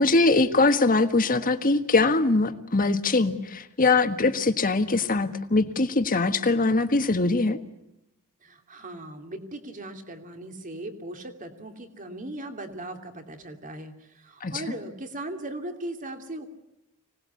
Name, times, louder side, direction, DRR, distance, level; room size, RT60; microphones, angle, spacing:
voice 1, 0.0-7.6 14.4-14.5, left 3 dB, 40° left, 8 dB, 1.6 m, -22 dB
voice 2, 8.4-16.5, right 1 dB, 35° right, 5 dB, 2.7 m, -38 dB
25.5 x 19.5 x 8.4 m, 0.92 s
head